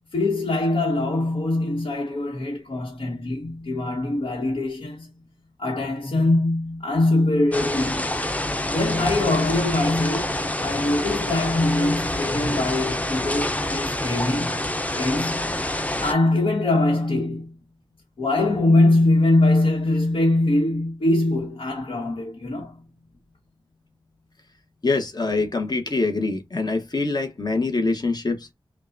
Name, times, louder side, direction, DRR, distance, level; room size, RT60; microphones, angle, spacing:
voice 1, 0.1-5.1 5.6-8.0 8.7-14.6 15.0-15.5 16.0-17.5 18.2-22.7, left 2 dB, 85° left, 1.2 m, -22 dB
sound 1, 7.5-16.1, left 1 dB, 15° left, 0.6 m, -27 dB
voice 2, 24.8-28.5, left 3 dB, 50° left, 1.0 m, -24 dB
5.4 x 2.3 x 2.5 m
wide cardioid pair, 80°, 9 cm